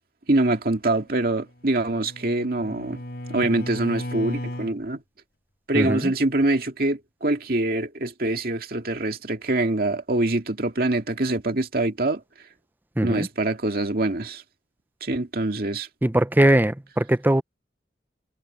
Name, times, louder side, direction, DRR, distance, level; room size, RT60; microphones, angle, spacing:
voice 1, 0.3-3.0 3.3-5.0 5.7-12.2 13.0-14.4 15.0-15.9, right 2 dB, 55° right, 2.2 m, -24 dB
Bowed string instrument, 1.4-4.8, left 1 dB, 60° left, 3.7 m, -35 dB
voice 2, 5.7-6.1 13.0-13.3 16.0-17.4, right 1 dB, 10° right, 0.5 m, -20 dB
head